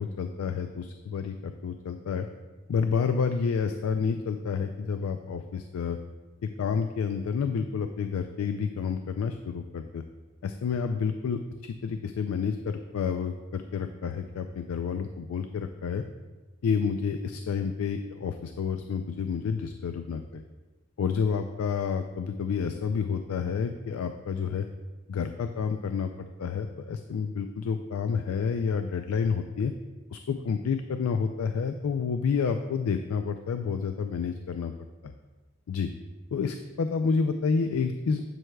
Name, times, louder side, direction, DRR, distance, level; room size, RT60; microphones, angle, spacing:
voice 1, 0.0-2.3 2.7-6.0 6.4-10.0 10.4-16.0 16.6-20.4 21.0-24.7 25.1-26.1 26.4-29.7 30.1-34.7 35.0-35.1 35.7-35.9 36.3-38.2, left 6 dB, 80° left, 7 dB, 0.3 m, -29 dB
7.7 x 7.7 x 2.3 m, 1.2 s
head